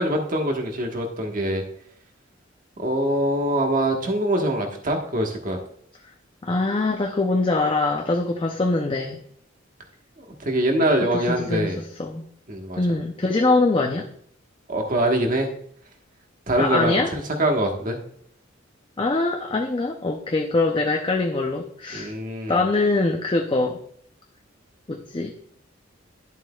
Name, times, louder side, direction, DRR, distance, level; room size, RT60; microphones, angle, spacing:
voice 1, 0.0-1.6 2.8-5.6 10.2-11.8 12.5-12.8 14.7-15.5 16.5-18.0 21.9-22.6, right 1 dB, 45° right, 3 dB, 1.4 m, -24 dB
voice 2, 6.4-9.2 11.3-12.2 12.8-14.1 16.6-17.1 19.0-22.1 22.5-23.8 24.9-25.3, left 2 dB, 25° left, 2 dB, 0.6 m, -23 dB
11.0 x 7.6 x 2.3 m, 0.64 s
head